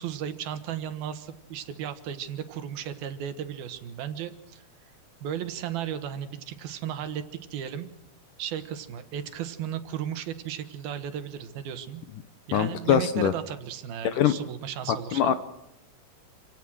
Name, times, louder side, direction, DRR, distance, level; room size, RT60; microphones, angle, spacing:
voice 1, 0.0-4.6 5.2-7.2 7.5-7.9 8.4-12.0 12.5-15.4, right 9 dB, 75° right, 10 dB, 3.2 m, -35 dB
voice 2, 12.5-13.3 14.0-14.3 15.1-15.3, left 10 dB, 70° left, 11 dB, 2.1 m, -22 dB
27.5 x 17.5 x 6.3 m, 0.87 s
omnidirectional pair, 4.5 m